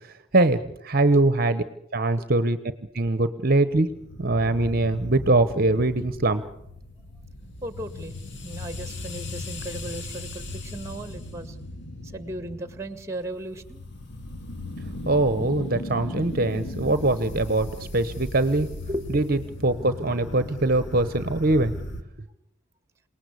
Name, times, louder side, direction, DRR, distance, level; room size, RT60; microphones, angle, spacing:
voice 1, 0.8-1.6 1.9-2.6 2.9-3.9 4.2-6.4 15.0-17.7 17.9-18.7 19.1-21.7, right 2 dB, 45° right, 12 dB, 1.0 m, -22 dB
sound 1, 3.9-22.0, left 1 dB, 55° left, 2.1 m, -37 dB
voice 2, 7.6-8.2 8.4-11.6 12.1-13.8 18.9-19.3, right 1 dB, 15° right, 11 dB, 1.8 m, -36 dB
28.0 x 19.0 x 8.3 m, 0.79 s
head